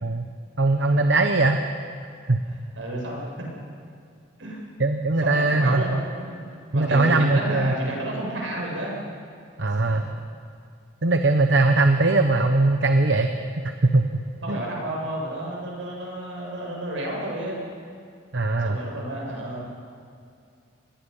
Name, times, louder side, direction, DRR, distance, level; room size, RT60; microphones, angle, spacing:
voice 1, 0.6-1.6 2.3-2.4 4.8-6.0 6.7-7.7 9.6-10.0 11.0-14.6 18.3-18.8, right 2 dB, 60° right, 5 dB, 1.0 m, -21 dB
voice 2, 2.8-3.5 4.4-4.6 5.2-6.4 6.7-8.9 14.4-17.7 18.6-19.6, right 1 dB, 75° right, -2 dB, 7.4 m, -31 dB
27.5 x 20.5 x 5.6 m, 2.4 s
head